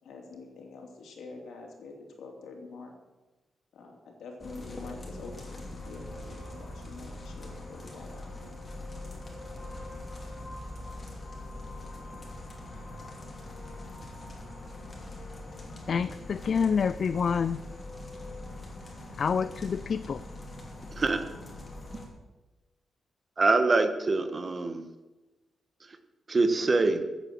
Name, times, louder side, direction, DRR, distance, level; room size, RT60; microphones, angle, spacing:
voice 1, 0.0-2.9 3.7-8.6, left 3 dB, 85° left, 2 dB, 3.0 m, -46 dB
sound 1, 4.4-22.1, left 2 dB, 25° left, 3.1 m, -42 dB
voice 2, 15.9-17.6 19.2-20.2, left 6 dB, 45° left, 14 dB, 0.4 m, -27 dB
voice 3, 23.4-24.8 26.3-27.0, right 3 dB, 30° right, 8 dB, 1.2 m, -24 dB
14.5 x 8.3 x 7.6 m, 1.1 s
wide cardioid pair, 140°, 0 cm